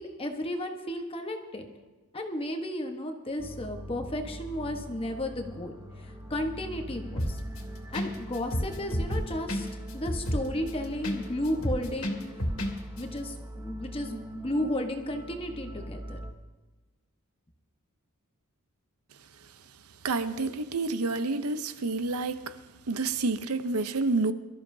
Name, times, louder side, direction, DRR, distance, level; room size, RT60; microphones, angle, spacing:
voice 1, 0.0-1.7 2.1-7.4 7.9-12.2 13.0-16.2, left 1 dB, 25° left, 1.2 m, -34 dB
sound 1, 3.4-16.3, equal, 15° right, 0.9 m, -42 dB
sound 2, 7.2-7.6 7.9-8.1 8.3-11.2 11.4-12.7 13.0-13.1, equal, 65° left, 2.4 m, -30 dB
voice 2, 20.0-22.6 22.9-24.3, right 3 dB, 80° right, 0.8 m, -29 dB
24.0 x 13.5 x 2.7 m
head